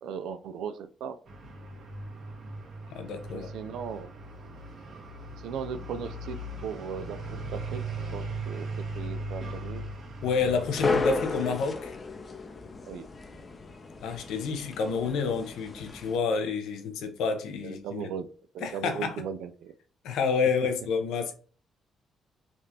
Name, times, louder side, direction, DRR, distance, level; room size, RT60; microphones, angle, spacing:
voice 1, 0.0-1.2 3.3-4.1 5.4-7.8 8.1-9.9 12.9-13.1 17.6-18.3 18.5-19.7, right 7 dB, 85° right, 0.3 m, -37 dB
sound 1, 1.3-11.5, right 2 dB, 50° right, 1.2 m, -39 dB
voice 2, 2.9-3.5 10.2-12.0 14.0-18.0 18.6-19.2 20.0-21.3, left 5 dB, 85° left, 0.6 m, -29 dB
sound 2, 10.4-16.2, left 3 dB, 35° left, 0.5 m, -34 dB
3.5 x 2.4 x 2.8 m
cardioid pair, 90°, 0 cm